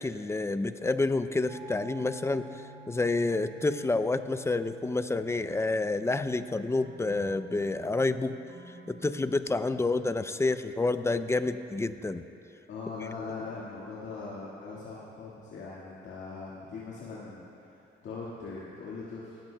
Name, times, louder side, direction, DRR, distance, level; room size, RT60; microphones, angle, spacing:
voice 1, 0.0-8.4 8.9-12.2, left 3 dB, 15° left, 11 dB, 0.4 m, -29 dB
sound 1, 1.5-9.4, right 3 dB, 40° right, 0.8 m, -51 dB
voice 2, 12.7-19.4, left 4 dB, 75° left, -7 dB, 1.8 m, -41 dB
19.0 x 13.5 x 2.2 m, 2.8 s
cardioid pair, 90°, 20 cm